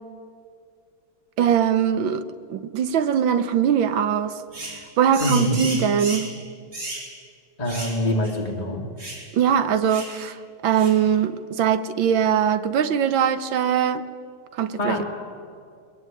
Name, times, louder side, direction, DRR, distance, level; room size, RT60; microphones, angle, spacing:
voice 1, 1.4-2.2 2.5-4.4 5.0-6.3 9.3-10.4 10.6-14.1 14.6-15.0, right 8 dB, 80° right, 1.8 m, -21 dB
sound 1, 4.5-4.8 5.1-6.3 6.7-7.1 7.7-8.0 8.2-8.4 9.0-9.3 9.9-10.2 10.8-11.0, right 1 dB, 55° right, 4.7 m, -34 dB
voice 2, 5.2-5.6 7.6-8.8 14.8-15.0, left 1 dB, 20° left, 2.4 m, -24 dB
22.5 x 21.0 x 9.2 m
omnidirectional pair, 2.1 m